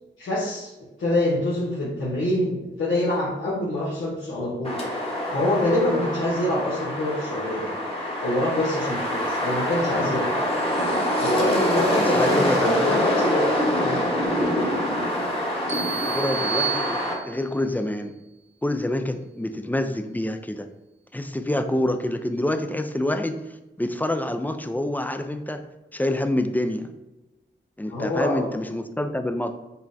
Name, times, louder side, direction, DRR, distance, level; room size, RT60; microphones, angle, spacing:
voice 1, 0.2-0.7 1.0-4.9 5.3-7.7 8.2-10.3 11.2-13.6 13.8-14.0 27.9-28.4, left 1 dB, 85° left, -7 dB, 0.8 m, -25 dB
sound 1, 4.6-17.1, left 1 dB, 30° left, 1.1 m, -25 dB
voice 2, 12.0-13.0 15.9-18.1 18.6-20.7 21.1-23.4 23.8-25.6 25.9-26.9 27.8-29.5, left 1 dB, 10° left, 7 dB, 0.3 m, -27 dB
sound 2, 15.7-17.6, right 7 dB, 70° right, 0.6 m, -30 dB
5.6 x 2.1 x 2.6 m, 1.0 s
cardioid pair, 40°, 20 cm